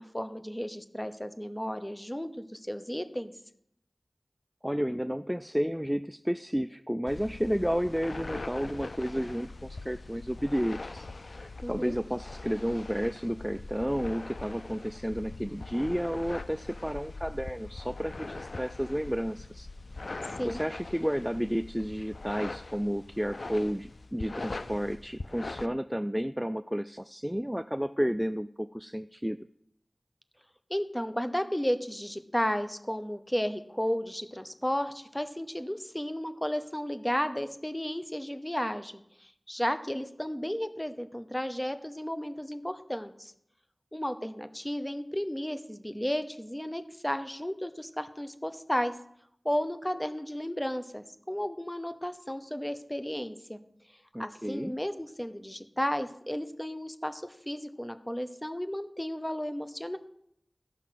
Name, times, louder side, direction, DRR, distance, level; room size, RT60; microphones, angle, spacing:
voice 1, 0.0-3.3 11.6-12.0 20.4-20.6 30.7-43.3 43.9-48.9 49.4-53.6 54.2-60.0, equal, 15° left, 9 dB, 0.9 m, -33 dB
voice 2, 4.6-11.1 11.4-19.7 20.4-29.4 54.1-54.7, equal, 5° right, 11 dB, 0.3 m, -31 dB
sound 1, 7.1-25.7, left 3 dB, 80° left, 0.3 m, -42 dB
14.0 x 5.8 x 5.9 m, 0.72 s
wide cardioid pair, 40°, 0 cm